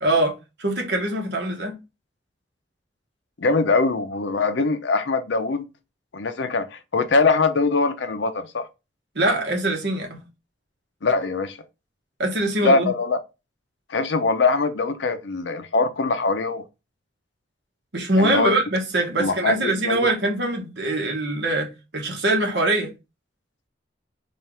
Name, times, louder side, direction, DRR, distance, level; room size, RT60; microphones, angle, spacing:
voice 1, 0.0-0.3 0.6-1.7 9.1-10.2 12.2-12.9 17.9-22.9, right 1 dB, 65° right, 1.2 m, -23 dB
voice 2, 3.4-5.6 6.1-8.7 11.0-11.6 12.6-13.2 13.9-16.6 18.2-18.5 19.2-20.1, left 3 dB, 80° left, 0.6 m, -22 dB
4.3 x 2.5 x 3.4 m
head